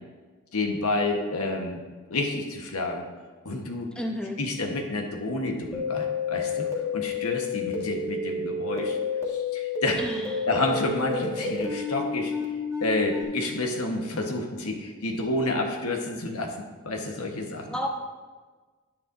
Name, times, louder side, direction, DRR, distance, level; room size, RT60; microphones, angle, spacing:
voice 1, 0.5-1.8 2.1-3.0 3.4-3.9 4.4-9.0 9.3-10.0 10.5-12.3 12.8-17.8, left 2 dB, 90° left, 2 dB, 1.3 m, -29 dB
voice 2, 4.0-4.4 10.0-10.5 17.7-17.9, equal, 5° left, 0 dB, 0.8 m, -31 dB
sound 1, 5.7-13.2, left 5 dB, 15° right, 1.6 m, -30 dB
10.5 x 9.6 x 2.7 m, 1.4 s
head